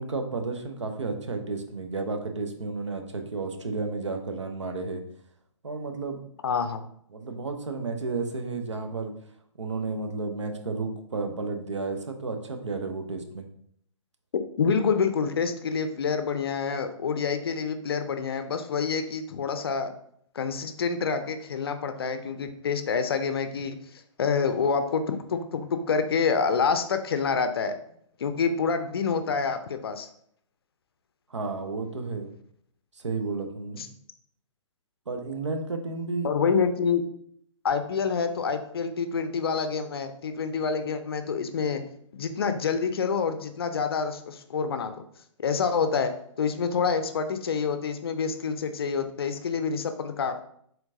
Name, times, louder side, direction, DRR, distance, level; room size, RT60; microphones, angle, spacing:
voice 1, 0.0-5.0 5.6-6.2 7.1-9.1 9.6-13.5 31.3-32.3 32.9-33.8 35.1-36.3, right 3 dB, 65° right, 5 dB, 0.7 m, -32 dB
voice 2, 6.4-6.9 14.3-19.9 20.3-27.7 28.2-30.1 33.8-33.9 36.2-37.0 37.6-41.8 42.1-44.9 45.4-46.1 46.4-50.4, left 5 dB, 50° left, 9 dB, 0.5 m, -27 dB
4.4 x 3.8 x 2.7 m, 0.67 s
figure-of-eight pair, 125°, 16 cm